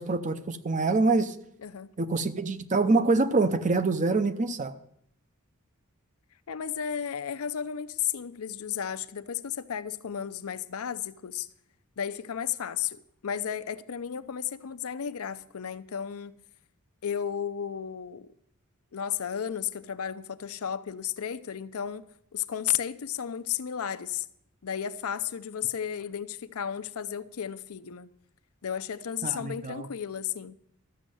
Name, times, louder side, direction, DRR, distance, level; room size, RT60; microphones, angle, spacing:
voice 1, 0.0-1.3 2.0-4.7 29.2-29.9, right 3 dB, 35° right, 0.6 m, -25 dB
voice 2, 1.6-1.9 6.5-11.5 12.0-16.3 17.0-18.3 18.9-22.1 22.3-24.3 24.6-28.1 28.6-30.6, left 9 dB, 70° left, 0.5 m, -33 dB
13.0 x 6.3 x 7.7 m
head